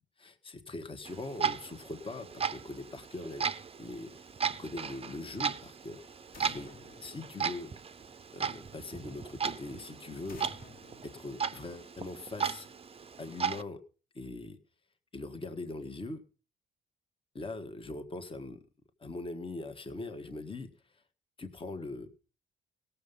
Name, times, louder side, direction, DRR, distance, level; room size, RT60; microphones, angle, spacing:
voice 1, 0.2-4.3 4.6-6.0 6.5-6.7 7.0-7.7 8.3-10.6 11.0-12.7 13.2-13.8 14.1-14.6 15.1-16.2 17.3-18.6 19.0-21.0 21.4-22.3, left 2 dB, 25° left, 7 dB, 1.5 m, -41 dB
Clock, 1.0-13.6, right 6 dB, 30° right, 0.7 m, -37 dB
sound 1, 6.3-8.1 10.3-12.1, left 3 dB, 45° left, 2.0 m, -53 dB
17.0 x 6.9 x 5.4 m, 0.36 s
cardioid pair, 90°, 20 cm